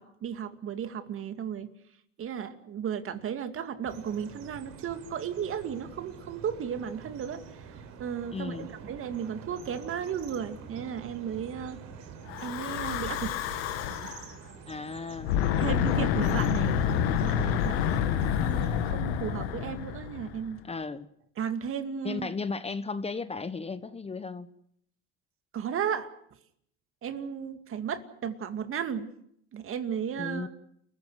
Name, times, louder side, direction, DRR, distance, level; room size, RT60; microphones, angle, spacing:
voice 1, 0.0-1.7 2.2-7.7 8.0-11.8 12.4-13.4 13.9-14.2 15.6-20.6 21.4-22.3 25.5-26.1 27.0-29.1 29.5-30.5, right 8 dB, 45° right, 9 dB, 2.4 m, -35 dB
sound 1, 3.8-18.9, right 6 dB, 60° right, 4.4 m, -47 dB
voice 2, 8.3-8.7 14.6-15.3 20.6-21.1 22.0-24.5 30.2-30.5, left 4 dB, 20° left, 13 dB, 1.3 m, -35 dB
Breathing / Wind, 12.3-14.2 15.1-20.5, left 9 dB, 80° left, 2.2 m, -28 dB
30.0 x 15.0 x 8.0 m, 0.71 s
supercardioid pair, 90°, 31 cm